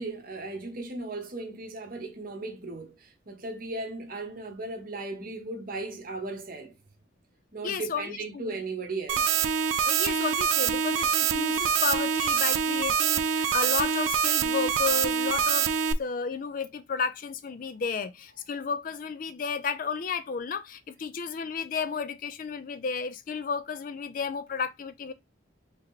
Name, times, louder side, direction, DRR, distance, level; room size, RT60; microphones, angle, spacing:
voice 1, 0.0-6.7 7.5-9.4, right 3 dB, 45° right, 0.8 m, -36 dB
voice 2, 7.6-8.5 9.9-15.7 16.0-25.1, left 5 dB, 40° left, 0.4 m, -32 dB
sound 1, 9.1-15.9, right 7 dB, 75° right, 0.4 m, -25 dB
3.4 x 2.8 x 3.6 m
head